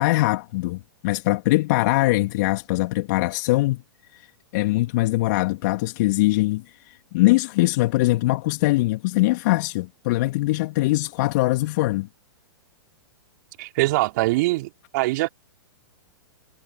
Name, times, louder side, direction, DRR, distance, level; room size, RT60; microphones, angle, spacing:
voice 1, 0.0-3.8 4.1-12.1, left 20 dB, 50° left, 2.7 m, -22 dB
voice 2, 13.6-15.3, right 20 dB, 50° right, 3.1 m, -23 dB
hypercardioid pair, 110°, 12 cm